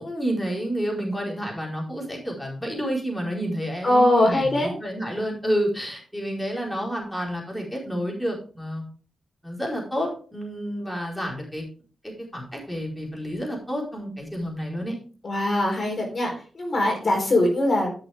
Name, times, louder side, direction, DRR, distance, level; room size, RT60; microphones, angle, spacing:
voice 1, 0.0-8.8 9.4-11.6 12.0-14.9, equal, 5° left, -2 dB, 4.6 m, -29 dB
voice 2, 3.8-4.7 15.2-17.9, left 1 dB, 45° left, 1 dB, 4.1 m, -21 dB
14.0 x 6.5 x 3.6 m, 0.40 s
cardioid pair, 60°, 0 cm